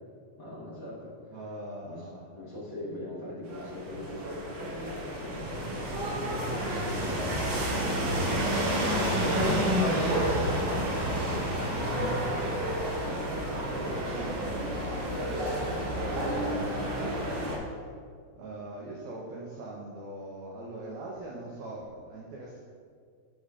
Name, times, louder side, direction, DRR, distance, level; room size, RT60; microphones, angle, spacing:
voice 1, 0.4-1.3 1.8-10.4 10.6-11.3 11.6-12.8 13.0-13.2 13.5-14.3, left 1 dB, 50° left, -9 dB, 1.5 m, -42 dB
voice 2, 1.3-2.3 13.1-17.4 18.3-22.6, right 2 dB, 75° right, -4 dB, 1.9 m, -42 dB
sound 1, 3.5-17.6, equal, 60° right, 1.8 m, -30 dB
14.5 x 5.0 x 2.4 m, 2.1 s
omnidirectional pair, 4.6 m